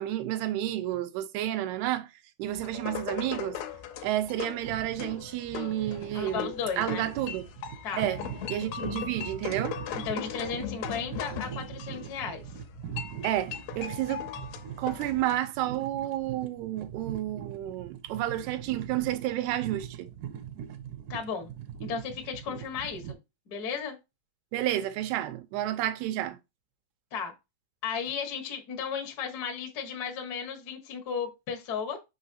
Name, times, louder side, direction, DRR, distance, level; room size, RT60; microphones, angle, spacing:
voice 1, 0.0-2.1 2.4-3.6 4.0-7.4 8.0-8.2 8.5-9.8 13.2-14.5 14.8-20.1 24.5-26.4, right 13 dB, 90° right, 2.8 m, -31 dB
sound 1, 2.5-15.4, left 10 dB, 85° left, 2.7 m, -39 dB
sound 2, 4.7-23.1, right 9 dB, 75° right, 2.0 m, -42 dB
voice 2, 6.1-7.1 7.8-8.0 10.0-12.4 21.1-21.5 21.8-23.0 23.5-24.0 27.1-27.3 27.8-32.0, left 6 dB, 60° left, 1.0 m, -34 dB
6.2 x 5.7 x 2.7 m
omnidirectional pair, 4.5 m